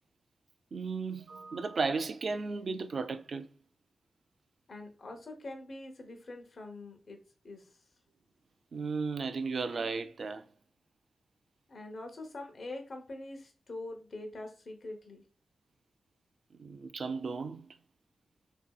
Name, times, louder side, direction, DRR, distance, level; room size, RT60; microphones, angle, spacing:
voice 1, 0.7-3.5 8.7-10.4 16.6-17.8, right 4 dB, 60° right, 0.3 m, -35 dB
voice 2, 4.7-7.7 11.7-15.2, left 2 dB, 60° left, 0.8 m, -44 dB
2.7 x 2.7 x 2.3 m
cardioid pair, 70°, 0 cm